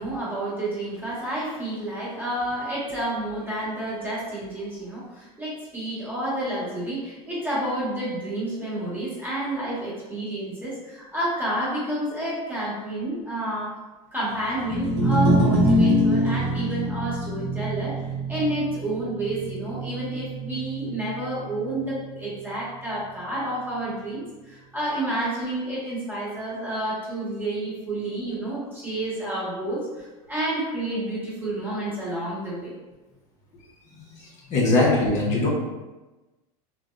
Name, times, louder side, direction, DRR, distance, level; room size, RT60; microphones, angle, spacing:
voice 1, 0.0-13.8 14.1-18.0 18.3-32.7, right 1 dB, 10° right, -9 dB, 1.0 m, -30 dB
sound 1, 14.6-21.0, equal, 60° right, 0.6 m, -24 dB
voice 2, 34.5-35.5, left 2 dB, 40° left, -5 dB, 0.6 m, -20 dB
2.7 x 2.0 x 2.3 m, 1.1 s
supercardioid pair, 125°, 19 cm